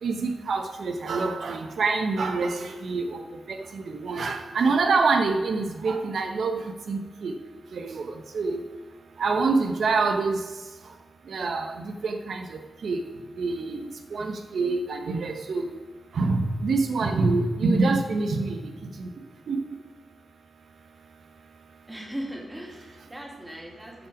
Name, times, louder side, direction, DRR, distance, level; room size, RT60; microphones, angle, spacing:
voice 1, 0.0-3.2 3.5-6.6 6.9-7.3 7.7-8.6 9.2-10.4 11.3-11.7 12.0-12.5 12.8-13.0 13.4-15.6 16.2-18.6 19.0-19.1 19.5-19.6, right 3 dB, 75° right, 5 dB, 0.9 m, -26 dB
voice 2, 21.9-24.1, equal, 10° right, -1 dB, 2.4 m, -38 dB
13.0 x 5.9 x 4.9 m, 1.4 s
wide cardioid pair, 125°, 0 cm